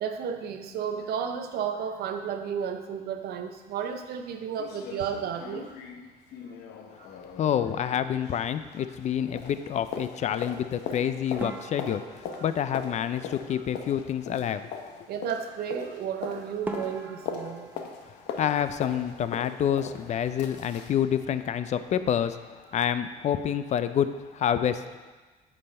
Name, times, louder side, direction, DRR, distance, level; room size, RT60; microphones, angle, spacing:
voice 1, 0.0-5.7 7.0-7.1 13.6-13.7 15.1-17.7, right 7 dB, 70° right, 7 dB, 0.7 m, -33 dB
sound 1, 3.7-3.8 4.1-4.2 4.6-9.1 9.4-21.0 21.4-21.5, left 6 dB, 85° left, 0.7 m, -41 dB
voice 2, 7.4-14.7 18.0-25.1, left 9 dB, 45° left, 12 dB, 0.4 m, -28 dB
sound 2, 11.4-13.9 16.1-16.2 16.6-19.4 19.7-20.5 20.8-21.0 21.3-21.4 22.0-22.3, right 3 dB, 10° right, 0.7 m, -43 dB
8.6 x 5.4 x 3.3 m, 1.3 s
cardioid pair, 110°, 17 cm